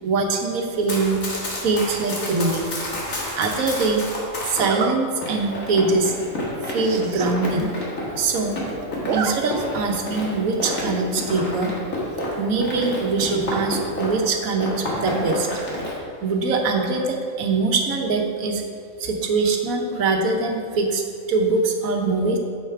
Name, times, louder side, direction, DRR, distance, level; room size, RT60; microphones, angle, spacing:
voice 1, 0.0-1.2 1.6-2.8 3.4-4.0 4.4-6.1 6.7-7.7 8.2-8.6 9.1-11.8 12.4-15.5 16.2-18.6 19.0-21.0 21.3-22.4, right 3 dB, 90° right, 3 dB, 1.4 m, -23 dB
Run, 0.7-4.7 5.2-14.3 14.6-16.0, left 1 dB, 75° left, 2.0 m, -30 dB
Zipper (clothing), 2.6-3.0 4.6-5.0 5.5-5.7 6.0-6.1 6.3-6.4 6.7-7.3 7.7-7.8 8.0-8.5 8.8-9.3 9.7-9.8 11.1-11.5, right 6 dB, 70° right, 0.9 m, -30 dB
7.5 x 6.6 x 4.7 m, 2.4 s
omnidirectional pair, 1.4 m